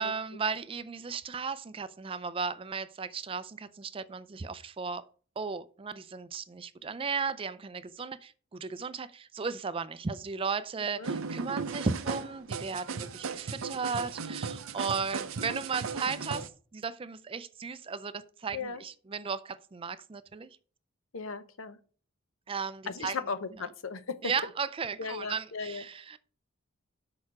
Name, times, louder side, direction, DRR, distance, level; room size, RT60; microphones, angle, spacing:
voice 1, 0.0-5.0 5.4-20.5 22.5-23.2 23.6-23.7 24.2-26.2, right 5 dB, 25° right, 0.4 m, -35 dB
sound 1, 11.0-16.5, right 5 dB, 85° right, 0.6 m, -36 dB
voice 2, 21.1-21.8 22.9-24.3 25.0-25.8, left 4 dB, 75° left, 0.8 m, -36 dB
6.4 x 4.8 x 5.8 m
head